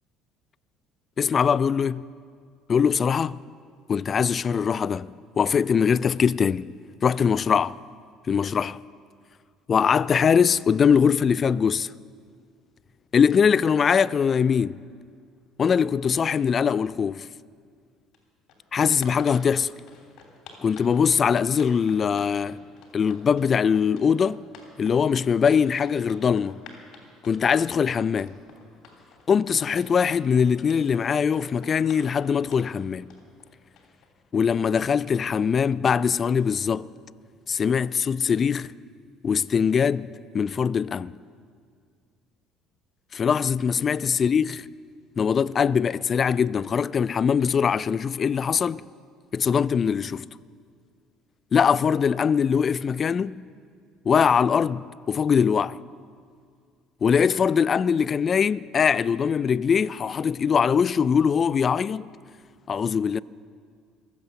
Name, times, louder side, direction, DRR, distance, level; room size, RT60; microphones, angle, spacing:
voice 1, 1.2-2.0 2.7-3.4 3.9-6.7 7.0-7.8 8.3-8.8 9.7-11.9 13.1-14.8 15.6-17.3 18.7-19.7 20.6-22.6 22.9-24.4 24.8-26.6 27.2-28.4 29.3-33.1 34.3-36.9 37.5-38.7 39.2-40.1 40.3-41.1 43.1-44.7 45.2-48.8 49.3-50.3 51.5-53.4 54.1-55.8 57.0-62.1 62.7-63.2, left 6 dB, 40° left, 0.3 m, -22 dB
sound 1, 18.1-18.2 18.5-34.1, left 5 dB, 60° left, 3.2 m, -48 dB
22.0 x 8.1 x 7.0 m
hypercardioid pair, 65°, 0 cm